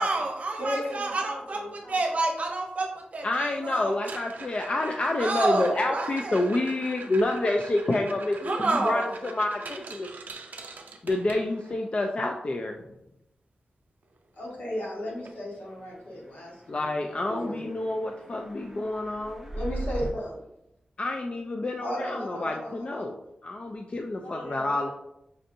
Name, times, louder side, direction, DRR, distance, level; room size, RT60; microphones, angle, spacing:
voice 1, 0.0-3.9 5.2-6.5 8.4-9.1, right 2 dB, 55° right, 1 dB, 0.7 m, -29 dB
voice 2, 0.6-2.0 14.4-16.5 16.8-16.9 17.3-17.7 19.5-20.4 21.8-23.1 24.2-24.9, equal, 90° left, -4 dB, 1.3 m, -35 dB
voice 3, 3.2-10.1 11.0-12.8 16.7-19.5 21.0-23.1 23.4-24.9, left 2 dB, 40° left, 3 dB, 0.3 m, -28 dB
sound 1, 3.9-11.9 14.2-14.3 14.5-14.8 15.3-15.4 15.9-16.0 17.9-18.0, right 3 dB, 75° right, 0.4 m, -43 dB
sound 2, 15.6-20.1, right 1 dB, 5° right, 0.8 m, -39 dB
5.3 x 2.6 x 2.6 m, 0.84 s
wide cardioid pair, 110°, 3 cm